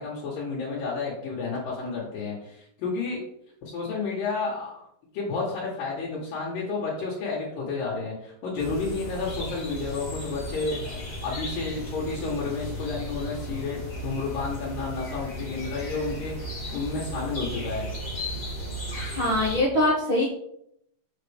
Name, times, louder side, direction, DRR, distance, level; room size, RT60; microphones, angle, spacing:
voice 1, 0.0-3.2 3.7-4.7 5.1-17.9, left 4 dB, 65° left, -4 dB, 2.6 m, -31 dB
sound 1, 8.6-19.6, equal, 85° left, 0.4 m, -35 dB
voice 2, 19.1-20.3, left 1 dB, 55° right, -5 dB, 1.4 m, -23 dB
7.0 x 5.8 x 3.4 m, 0.73 s
omnidirectional pair, 4.7 m